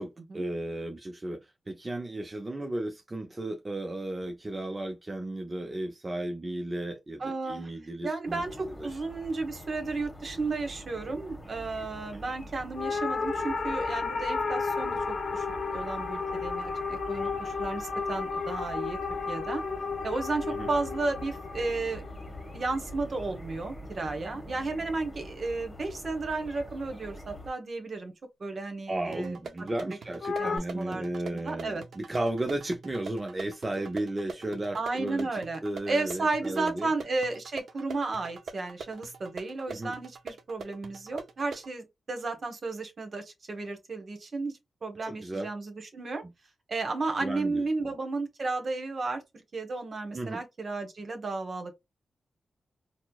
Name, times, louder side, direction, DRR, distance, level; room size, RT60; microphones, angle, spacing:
voice 1, 0.0-8.4 8.8-8.9 12.1-12.2 17.3-17.4 20.5-20.7 28.9-36.9 39.7-39.9 45.0-45.5 46.2-46.3 47.2-47.6 50.1-50.4, right 1 dB, 30° right, 0.5 m, -34 dB
voice 2, 7.2-7.7 8.0-19.0 19.3-19.6 20.0-22.0 22.5-28.1 28.4-29.3 30.4-31.1 31.3-31.8 34.7-35.6 35.9-46.2 46.7-49.2 49.5-51.8, right 3 dB, 55° right, 1.1 m, -33 dB
sound 1, 8.2-27.5, equal, 20° left, 1.2 m, -45 dB
sound 2, 12.8-23.3 30.2-30.6, left 4 dB, 60° left, 0.6 m, -33 dB
sound 3, 29.1-41.7, right 5 dB, 75° right, 0.5 m, -44 dB
4.3 x 2.0 x 2.3 m
cardioid pair, 65°, 0 cm